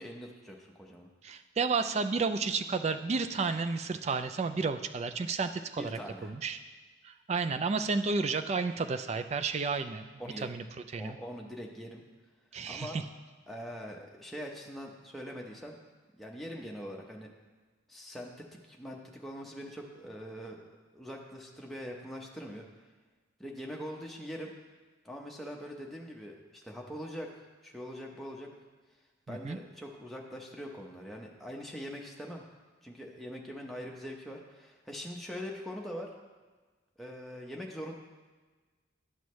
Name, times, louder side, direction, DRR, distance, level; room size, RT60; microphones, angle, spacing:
voice 1, 0.0-1.1 5.8-6.4 10.2-10.5 11.0-12.0 12.7-13.0 13.5-15.8 16.1-17.3 17.9-20.6 20.9-22.7 23.4-24.5 25.0-28.5 29.3-32.4 32.8-36.1 37.0-37.9, equal, ahead, -1 dB, 0.7 m, -43 dB
voice 2, 1.2-6.6 7.0-10.1 10.4-10.6 10.9-11.2 12.5-13.0 29.3-29.6, right 4 dB, 35° right, 9 dB, 0.3 m, -32 dB
11.0 x 6.2 x 3.1 m, 1.4 s
head